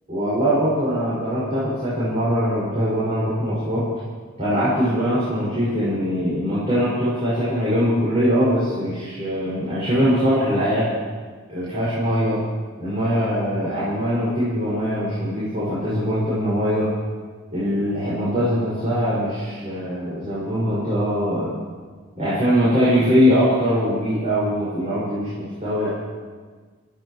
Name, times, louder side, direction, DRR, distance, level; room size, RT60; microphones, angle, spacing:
voice 1, 0.1-3.9 4.4-10.9 11.5-12.4 12.8-16.9 17.5-21.6 22.2-25.9, equal, 30° right, -11 dB, 5.7 m, -22 dB
29.0 x 13.0 x 3.1 m, 1.5 s
head